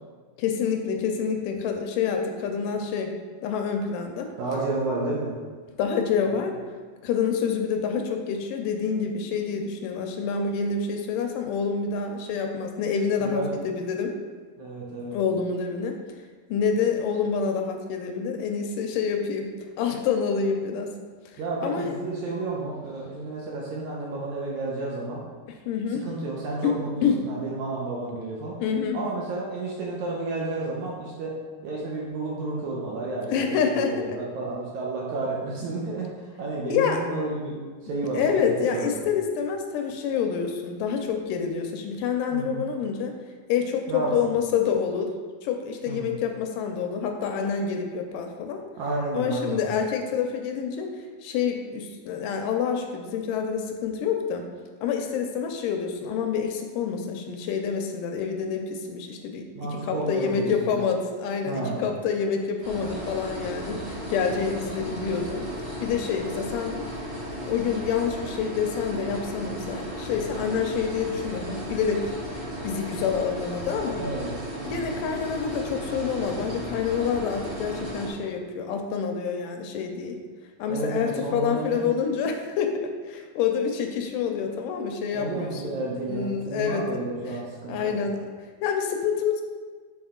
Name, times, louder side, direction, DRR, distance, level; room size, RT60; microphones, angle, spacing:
voice 1, 0.4-3.1 3.4-4.3 5.8-6.6 7.0-14.1 15.1-16.0 16.5-19.5 19.8-20.9 21.6-21.9 25.7-26.0 26.6-26.8 27.0-27.2 28.6-29.0 33.3-33.9 36.7-37.0 38.1-43.1 43.5-45.1 45.4-48.6 49.1-50.9 51.2-54.4 54.8-59.4 59.7-65.4 65.8-66.8 67.5-72.1 72.6-74.0 74.7-80.2 80.6-85.7 86.1-86.8 87.2-87.3 87.7-88.2 88.6-89.4, left 6 dB, 80° left, 4 dB, 2.1 m, -27 dB
voice 2, 4.4-5.3 6.3-6.5 13.2-13.5 14.6-15.2 21.4-25.2 25.9-28.6 28.9-31.3 31.6-37.6 37.8-39.1 42.3-42.6 43.9-44.3 45.9-46.2 48.8-49.6 59.6-60.8 61.5-61.8 74.0-74.3 74.6-74.9 80.7-81.9 85.1-87.9, right 2 dB, 75° right, -3 dB, 1.8 m, -31 dB
sound 1, 62.6-78.1, equal, 40° right, 2.2 m, -35 dB
6.9 x 3.9 x 3.7 m, 1.5 s
omnidirectional pair, 3.9 m